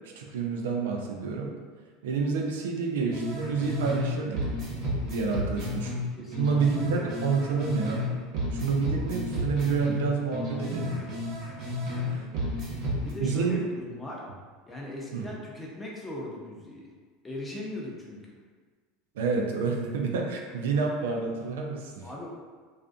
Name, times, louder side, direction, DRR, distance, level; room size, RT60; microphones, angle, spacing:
voice 1, 0.2-1.5 2.0-4.4 5.1-5.9 6.4-8.0 8.5-11.0 12.1-12.3 13.2-13.6 15.1-15.3 19.2-22.1, right 5 dB, 80° right, 1 dB, 0.3 m, -28 dB
sound 1, 3.1-4.1 4.3-8.1 8.3-12.1 12.3-13.1, left 1 dB, 55° right, 0.8 m, -32 dB
voice 2, 6.2-6.6 11.9-14.2 14.7-16.9 17.2-18.2 22.0-22.3, left 1 dB, 15° left, -3 dB, 0.7 m, -39 dB
2.4 x 2.3 x 2.4 m, 1.5 s
hypercardioid pair, 85°, 0 cm